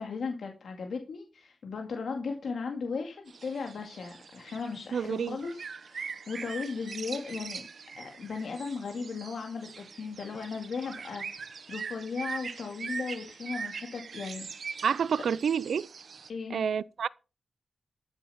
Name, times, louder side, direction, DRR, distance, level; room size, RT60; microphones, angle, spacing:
voice 1, 0.0-7.6 8.0-14.8 16.3-16.6, left 5 dB, 70° left, 2.2 m, -37 dB
sound 1, 3.3-16.3, right 5 dB, 60° right, 1.2 m, -42 dB
voice 2, 4.9-5.4 14.8-15.9 16.5-17.1, right 7 dB, 75° right, 0.5 m, -28 dB
14.0 x 7.2 x 5.7 m
wide cardioid pair, 135°, 0 cm